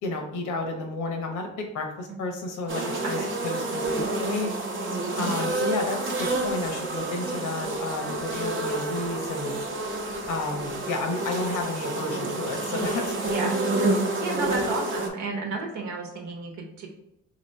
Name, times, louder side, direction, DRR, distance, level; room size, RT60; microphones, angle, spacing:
voice 1, 0.0-4.5 5.2-9.5 10.3-13.4, left 2 dB, 75° left, 3 dB, 0.9 m, -31 dB
sound 1, 2.7-15.1, right 2 dB, 40° right, 0.8 m, -29 dB
voice 2, 5.2-5.5 13.2-13.5 14.2-16.9, right 3 dB, 70° right, 1 dB, 1.0 m, -32 dB
2.9 x 2.8 x 4.3 m, 0.81 s
cardioid pair, 90°, 30 cm